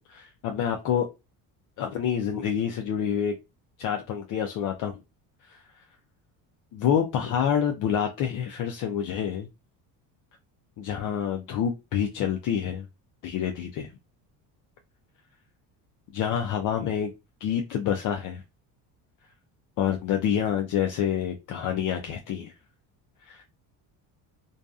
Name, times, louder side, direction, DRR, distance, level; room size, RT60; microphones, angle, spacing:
voice 1, 0.1-1.1 1.8-3.3 3.8-5.0 5.5-5.6 6.7-9.5 10.8-12.9 13.2-13.9 16.1-17.1 17.4-18.4 19.8-22.5 23.2-23.4, left 8 dB, 50° left, 0.5 m, -27 dB
2.6 x 2.3 x 2.3 m
cardioid pair, 125°, 42 cm